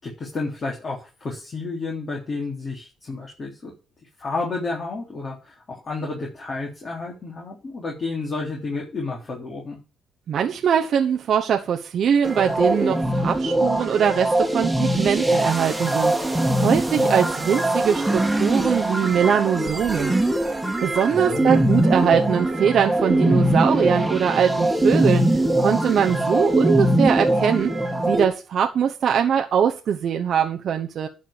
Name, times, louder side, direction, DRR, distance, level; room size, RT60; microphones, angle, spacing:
voice 1, 0.0-3.7 4.2-9.8 16.6-17.1 21.1-21.7, left 3 dB, 40° left, 3.5 m, -31 dB
voice 2, 10.3-20.2 20.8-27.7 28.0-31.1, right 8 dB, 60° right, 0.9 m, -22 dB
sound 1, 12.2-28.2, right 1 dB, 10° right, 2.0 m, -22 dB
11.5 x 4.7 x 7.4 m
cardioid pair, 90°, 0 cm